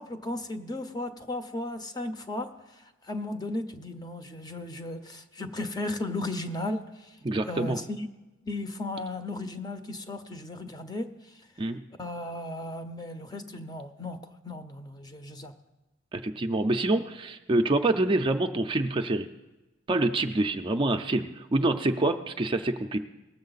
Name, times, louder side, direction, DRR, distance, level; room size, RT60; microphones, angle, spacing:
voice 1, 0.0-7.2 7.5-8.1 8.5-11.4 12.0-15.5, left 2 dB, 20° left, 8 dB, 0.7 m, -35 dB
voice 2, 7.2-7.8 11.6-11.8 16.1-19.3 19.9-23.0, right 2 dB, 25° right, 5 dB, 0.4 m, -26 dB
19.0 x 7.2 x 4.0 m, 1.1 s
head